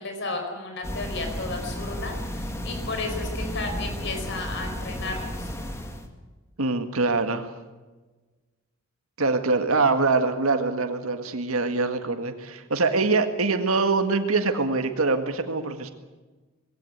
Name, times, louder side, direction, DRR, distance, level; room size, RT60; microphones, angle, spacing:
voice 1, 0.0-5.5, left 3 dB, 55° left, 4 dB, 4.6 m, -33 dB
sound 1, 0.8-6.1, equal, 15° left, 2.0 m, -33 dB
voice 2, 6.6-7.5 9.2-15.9, right 3 dB, 90° right, 7 dB, 1.8 m, -24 dB
20.5 x 17.0 x 9.4 m, 1.3 s
head